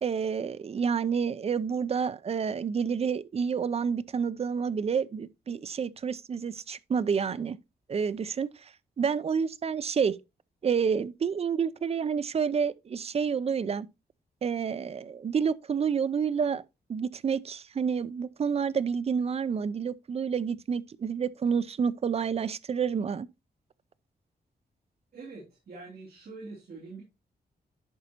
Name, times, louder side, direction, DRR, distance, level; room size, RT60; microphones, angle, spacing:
voice 1, 0.0-7.6 7.9-8.7 9.0-10.2 10.6-13.9 14.4-16.6 16.9-23.3, right 6 dB, 35° right, 0.5 m, -29 dB
voice 2, 25.1-27.0, right 3 dB, 65° right, 3.2 m, -44 dB
11.0 x 5.5 x 2.9 m
wide cardioid pair, 125°, 17 cm